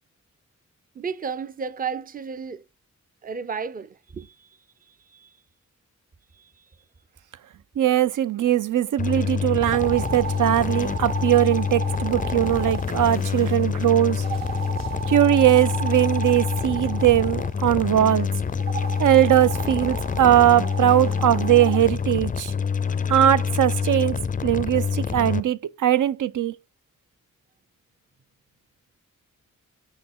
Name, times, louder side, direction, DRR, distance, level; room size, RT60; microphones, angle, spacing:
voice 1, 1.0-2.6 3.2-4.5 5.1-5.3 6.4-6.5, right 6 dB, 30° right, 0.5 m, -33 dB
voice 2, 7.8-14.2 15.1-18.3 19.0-22.5 23.1-26.5, right 12 dB, 80° right, 0.5 m, -20 dB
sound 1, 9.0-25.4, left 6 dB, 25° left, 0.4 m, -26 dB
sound 2, 9.7-13.6 14.2-17.5 18.6-21.8, right 8 dB, 60° right, 1.4 m, -35 dB
6.4 x 4.9 x 3.7 m
wide cardioid pair, 105°, 31 cm